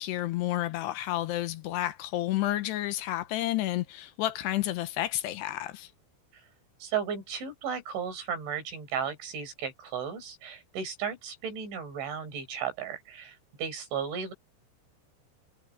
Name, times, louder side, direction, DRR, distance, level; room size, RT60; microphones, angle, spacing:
voice 1, 0.0-5.9, left 15 dB, 80° left, 2.8 m, -30 dB
voice 2, 6.8-14.3, right 7 dB, 85° right, 7.5 m, -35 dB
omnidirectional pair, 5.2 m